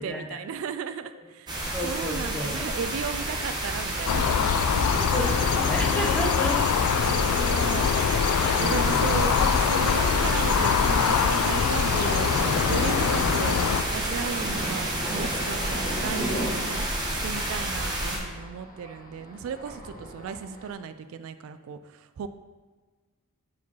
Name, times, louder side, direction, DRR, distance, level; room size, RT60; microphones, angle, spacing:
voice 1, 0.0-5.3 7.0-7.9 8.6-13.6 13.9-16.9 17.2-22.3, right 6 dB, 65° right, 11 dB, 0.3 m, -35 dB
voice 2, 1.5-2.7 5.0-6.6 7.6-7.9 8.3-9.2, equal, 5° left, 0 dB, 0.7 m, -33 dB
sound 1, 1.5-18.2, right 1 dB, 20° right, 0.9 m, -30 dB
sound 2, 4.1-13.8, left 7 dB, 85° left, 0.3 m, -24 dB
Thunder, 11.2-20.7, equal, 45° left, 1.4 m, -37 dB
4.8 x 4.5 x 5.4 m, 1.4 s
head